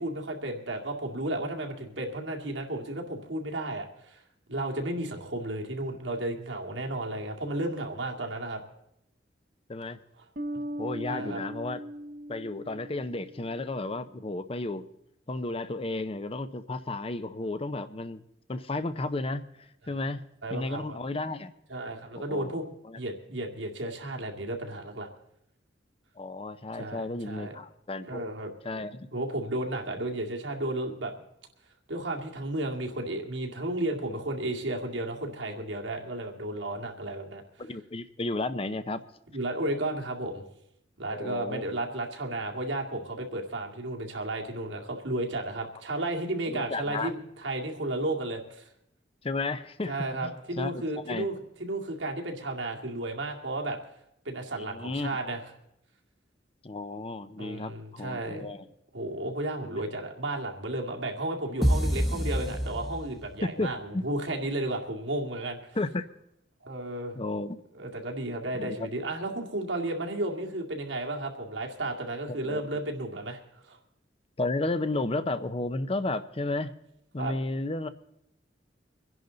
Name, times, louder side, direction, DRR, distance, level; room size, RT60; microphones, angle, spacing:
voice 1, 0.0-4.2 4.5-8.6 10.5-10.6 11.1-11.4 20.4-21.0 21.7-22.6 22.9-25.1 26.7-27.6 28.1-28.5 29.1-31.1 31.9-37.4 39.3-40.4 41.0-48.7 49.9-51.3 51.6-53.8 54.3-55.4 57.4-58.5 58.9-65.8 66.6-67.2 67.8-73.4 73.6-73.8 77.2-77.3, right 1 dB, 85° right, 1 dB, 2.2 m, -33 dB
sound 1, 10.4-13.7, equal, 50° right, 0.9 m, -39 dB
voice 2, 10.8-11.8 12.3-14.9 15.3-18.2 18.5-19.4 19.9-20.2 20.5-21.5 22.2-23.0 26.2-28.2 28.6-29.1 37.6-39.0 41.1-41.6 46.5-47.1 49.2-49.9 50.2-51.3 54.5-55.1 56.6-58.7 63.4-64.0 65.7-66.1 67.1-67.6 68.5-68.8 72.3-72.6 74.4-76.7 77.1-77.9, left 2 dB, 30° left, 12 dB, 0.7 m, -33 dB
sound 2, 61.6-63.4, equal, ahead, 1.0 m, -27 dB
24.5 x 10.5 x 3.9 m, 0.79 s
head